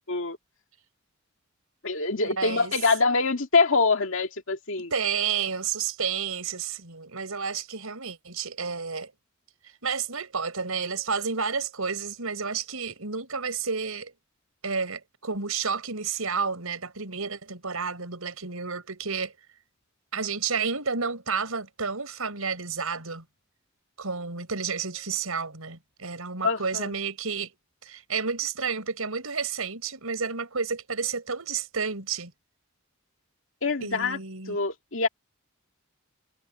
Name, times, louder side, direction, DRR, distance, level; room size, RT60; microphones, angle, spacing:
voice 1, 1.8-4.9 26.4-26.9 33.6-34.2 34.5-35.1, left 4 dB, 65° left, 2.3 m, -24 dB
voice 2, 2.4-2.7 4.9-9.1 9.8-14.1 14.6-19.3 20.1-23.2 24.0-27.5 27.8-32.3 33.8-34.6, right 5 dB, 85° right, 5.1 m, -31 dB
head